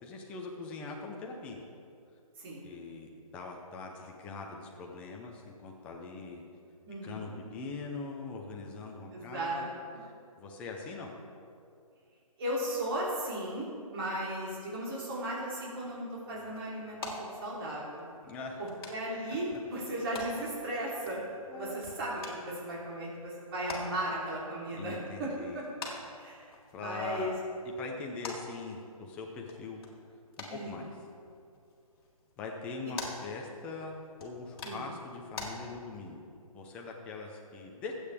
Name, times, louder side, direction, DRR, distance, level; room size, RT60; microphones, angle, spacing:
voice 1, 0.0-1.6 2.6-6.4 7.0-9.7 10.4-11.1 18.2-18.6 21.5-21.8 24.7-25.6 26.7-27.3 27.6-29.8 30.4-30.9 32.4-33.9 34.2-36.2 36.5-37.9, left 4 dB, 5° left, 1 dB, 0.6 m, -42 dB
voice 2, 6.8-7.3 9.1-9.7 12.4-18.0 18.6-21.2 21.5-25.6 26.2-26.5 26.8-27.3 30.5-30.8 34.6-34.9, right 1 dB, 40° right, -6 dB, 3.4 m, -36 dB
sound 1, 15.7-35.5, left 3 dB, 40° left, 2.9 m, -48 dB
23.0 x 8.7 x 3.5 m, 2.4 s
hypercardioid pair, 165°, 19 cm